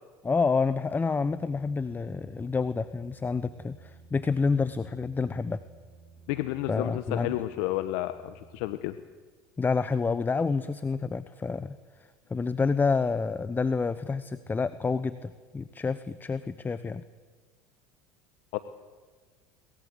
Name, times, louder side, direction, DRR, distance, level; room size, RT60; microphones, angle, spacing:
voice 1, 0.2-5.6 6.7-7.3 9.6-11.8 12.3-17.0, left 4 dB, 20° left, 14 dB, 1.0 m, -28 dB
sound 1, 1.3-8.8, right 5 dB, 20° right, 7.7 m, -54 dB
voice 2, 6.3-9.0 18.5-18.6, left 16 dB, 70° left, 11 dB, 1.1 m, -31 dB
22.5 x 20.5 x 8.1 m, 1.4 s
hypercardioid pair, 80°, 10 cm